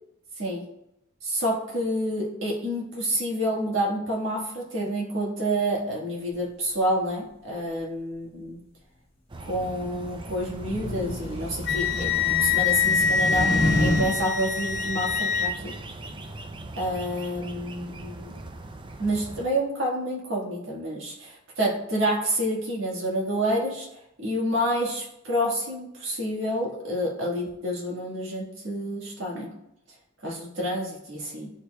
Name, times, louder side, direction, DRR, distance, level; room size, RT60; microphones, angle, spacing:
voice 1, 1.2-8.6 9.4-12.1 12.4-15.7 16.8-18.3 19.0-23.9 24.2-29.5 30.2-31.5, equal, 70° right, -3 dB, 1.6 m, -28 dB
sound 1, 9.3-19.5, right 2 dB, 25° right, 0.4 m, -39 dB
sound 2, 9.7-14.0, left 1 dB, 30° left, 1.4 m, -29 dB
Wind instrument woodwind instrument, 11.6-15.5, left 6 dB, 60° left, 0.5 m, -25 dB
10.0 x 4.6 x 2.3 m, 0.82 s
head